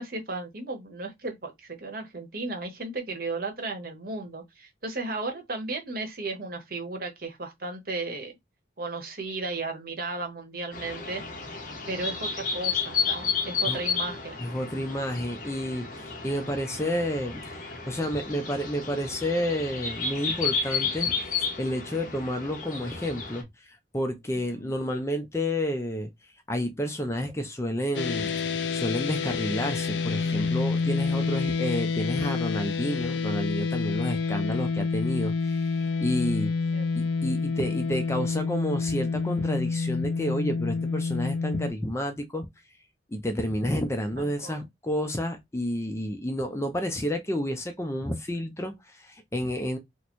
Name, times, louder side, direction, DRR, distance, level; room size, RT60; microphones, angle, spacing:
voice 1, 0.0-8.3 8.8-11.2 11.9-14.3 24.5-24.7 34.1-34.5 36.7-36.9 44.2-44.7, right 3 dB, 50° right, 1.0 m, -35 dB
sound 1, 10.7-23.4, left 5 dB, 45° left, 0.9 m, -32 dB
voice 2, 14.4-26.1 26.5-36.5 36.9-42.5 43.1-49.8, equal, 15° left, 0.5 m, -30 dB
sound 2, 27.9-41.7, left 4 dB, 75° left, 0.4 m, -28 dB
3.0 x 2.1 x 4.2 m
head